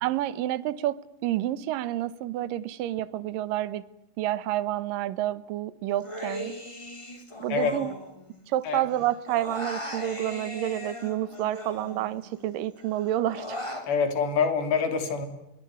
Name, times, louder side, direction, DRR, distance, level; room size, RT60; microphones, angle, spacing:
voice 1, 0.0-3.8 4.2-6.6 7.4-7.9 8.5-13.6, right 13 dB, 70° right, 2.3 m, -29 dB
Human voice, 6.0-8.6 8.9-12.4 12.8-13.9, left 1 dB, 10° left, 2.8 m, -38 dB
voice 2, 13.9-15.3, left 5 dB, 80° left, 5.5 m, -25 dB
25.0 x 23.0 x 9.4 m
omnidirectional pair, 4.9 m